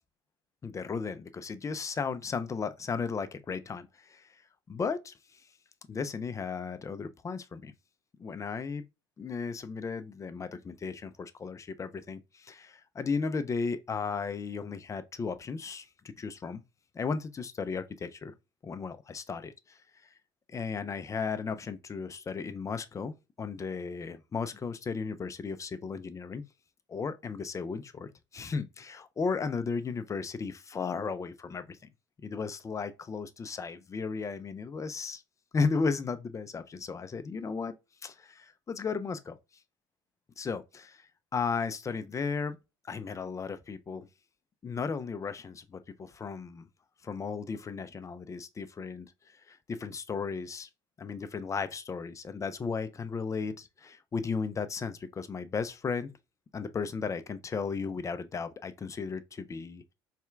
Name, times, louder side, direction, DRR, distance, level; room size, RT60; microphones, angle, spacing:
voice 1, 0.6-4.4 4.7-5.4 5.9-7.7 8.2-8.9 9.2-16.6 16.9-18.3 18.6-19.8 20.5-26.5 26.9-31.8 32.2-35.2 35.5-37.7 38.0-39.4 40.4-42.6 42.9-44.1 44.6-46.7 47.0-49.1 49.5-50.7 51.0-56.1 56.5-59.9, left 5 dB, 25° left, 0.5 m, -35 dB
4.2 x 3.3 x 2.4 m
hypercardioid pair, 75°, 12 cm